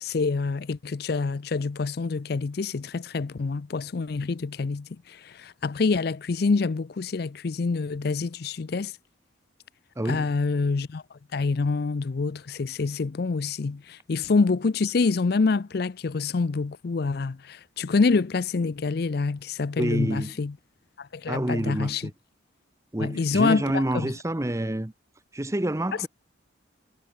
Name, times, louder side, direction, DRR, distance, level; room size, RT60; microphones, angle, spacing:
voice 1, 0.0-8.9 10.0-11.0 11.3-20.5 21.0-22.1 23.0-24.1, left 4 dB, 55° left, 0.5 m, -26 dB
voice 2, 10.0-10.3 19.8-20.3 21.3-22.1 22.9-24.9 25.3-26.1, right 1 dB, 15° right, 0.7 m, -28 dB
head